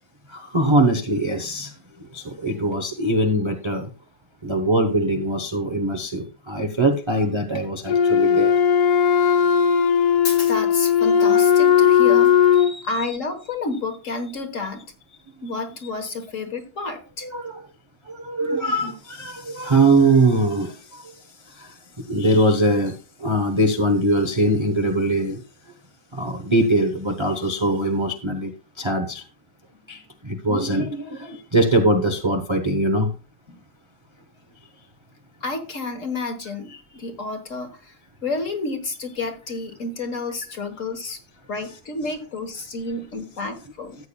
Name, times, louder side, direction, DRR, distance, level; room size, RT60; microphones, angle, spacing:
voice 1, 0.3-1.7 2.1-3.9 4.4-8.6 12.6-13.1 17.2-17.6 18.1-21.1 21.6-21.7 22.1-25.4 26.1-28.5 28.8-29.2 29.9-33.1, right 1 dB, 25° right, 3 dB, 0.6 m, -22 dB
Wind instrument woodwind instrument, 7.9-12.8, left 8 dB, 65° left, 1.2 m, -17 dB
voice 2, 10.2-12.3 12.8-14.9 15.4-17.3 33.5-33.6 35.4-37.9 38.2-41.2 41.5-44.0, left 3 dB, 45° left, 7 dB, 1.6 m, -30 dB
14.0 x 8.6 x 2.3 m, 0.32 s
omnidirectional pair, 2.1 m